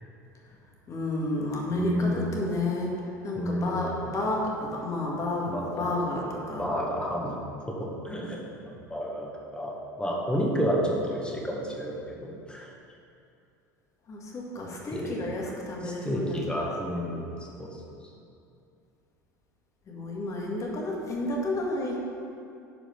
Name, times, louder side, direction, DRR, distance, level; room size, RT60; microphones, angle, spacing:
voice 1, 0.9-3.0 3.2-6.7 14.1-16.3 16.6-16.7 19.9-22.0, left 2 dB, 35° left, -2 dB, 1.9 m, -31 dB
voice 2, 1.7-2.4 3.3-4.1 5.5-6.0 6.6-7.3 7.7-12.7 14.9-15.2 15.8-17.8, equal, 10° left, -2 dB, 1.7 m, -31 dB
10.0 x 5.0 x 5.2 m, 2.6 s
figure-of-eight pair, 75°, 10 cm